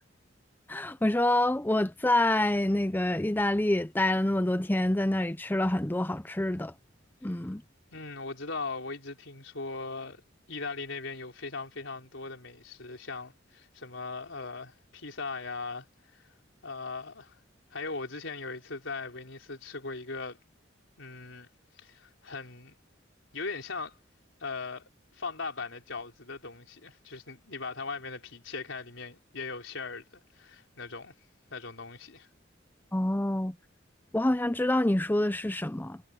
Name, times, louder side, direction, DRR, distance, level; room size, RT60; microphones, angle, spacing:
voice 1, 0.7-6.7 7.2-7.6 32.9-33.5 34.1-36.0, left 1 dB, 10° left, 0.6 m, -27 dB
voice 2, 7.9-10.2 10.5-16.3 16.6-17.4 17.7-20.4 21.0-21.5 21.8-22.7 23.3-24.0 24.4-31.1 31.5-32.3, left 4 dB, 80° left, 4.2 m, -39 dB
head